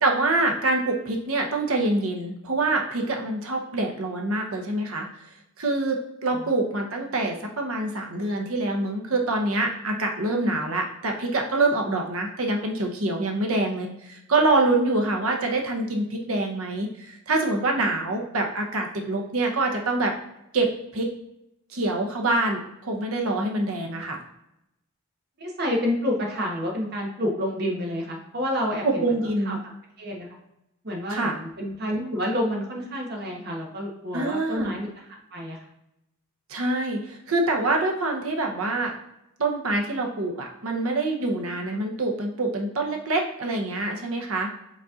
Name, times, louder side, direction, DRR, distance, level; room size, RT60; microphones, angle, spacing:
voice 1, 0.0-5.1 5.6-20.1 20.5-21.1 21.7-24.2 28.8-29.6 31.1-31.3 34.1-34.7 36.5-38.9 39.4-44.5, right 2 dB, 75° right, 2 dB, 0.9 m, -25 dB
voice 2, 25.4-29.1 29.5-29.6 30.0-30.4 30.8-35.7, left 1 dB, 45° right, 0 dB, 1.0 m, -29 dB
5.1 x 4.1 x 2.4 m, 0.86 s
head